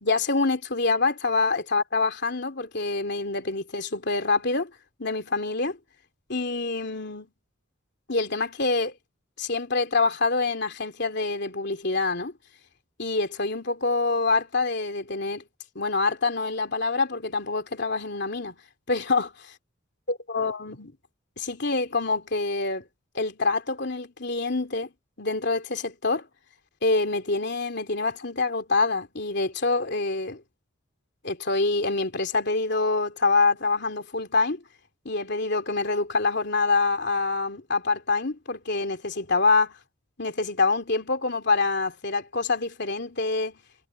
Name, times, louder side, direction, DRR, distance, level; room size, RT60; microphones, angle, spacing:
voice 1, 0.0-4.7 5.0-5.8 6.3-7.3 8.1-8.9 9.4-12.3 13.0-15.4 15.7-18.6 18.9-19.3 20.3-20.9 21.4-22.8 23.1-24.9 25.2-26.3 26.8-30.4 31.2-34.6 35.0-39.7 40.2-43.6, left 3 dB, 55° left, 3.2 m, -26 dB
head